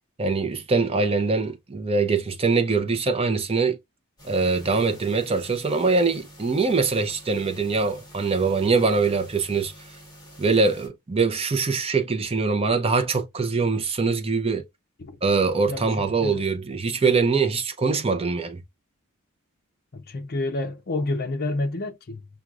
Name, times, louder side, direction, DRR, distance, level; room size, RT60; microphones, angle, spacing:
voice 1, 0.2-3.8 4.2-9.7 10.4-14.7 15.2-18.6, right 4 dB, 25° right, 0.6 m, -23 dB
sound 1, 4.2-10.9, equal, 20° left, 2.3 m, -48 dB
voice 2, 19.9-22.3, left 2 dB, 45° left, 0.5 m, -29 dB
5.9 x 2.3 x 2.4 m
head